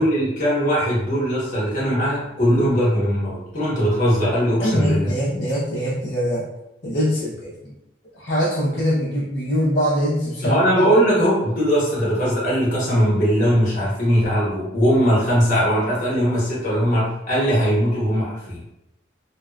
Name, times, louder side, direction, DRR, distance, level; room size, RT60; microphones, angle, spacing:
voice 1, 0.0-5.1 10.4-18.6, equal, 40° left, -7 dB, 1.0 m, -20 dB
voice 2, 4.6-6.5 6.8-7.7 8.1-10.9, equal, 70° left, -8 dB, 0.6 m, -23 dB
2.7 x 2.2 x 2.2 m, 0.87 s
head